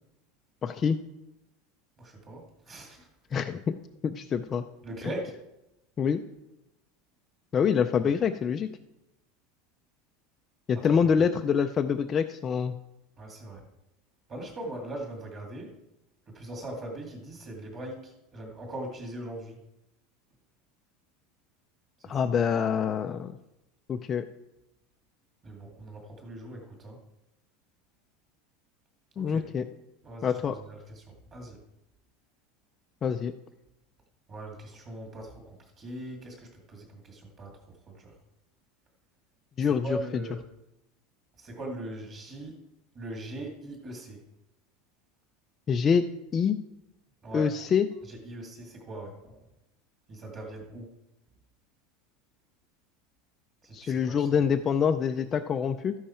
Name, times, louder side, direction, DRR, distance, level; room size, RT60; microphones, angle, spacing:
voice 1, 0.6-1.0 3.3-3.7 4.0-4.6 6.0-6.2 7.5-8.7 10.7-12.7 22.1-23.3 23.9-24.2 29.2-29.6 30.2-30.6 33.0-33.3 39.6-40.0 45.7-46.1 46.3-46.6 47.3-47.9 53.7-56.0, left 7 dB, 20° left, 6 dB, 0.3 m, -25 dB
voice 2, 2.0-3.1 4.8-5.3 10.7-10.9 13.2-13.6 14.3-15.7 16.3-19.6 22.0-22.4 25.4-27.0 29.2-29.5 30.0-31.6 34.3-37.5 37.9-38.1 39.6-40.4 41.4-42.6 42.9-44.2 47.2-47.5 48.1-49.4 50.1-50.9 53.6-54.3, right 1 dB, 20° right, 1 dB, 2.1 m, -40 dB
13.0 x 10.5 x 4.4 m, 0.93 s
supercardioid pair, 180°, 0 cm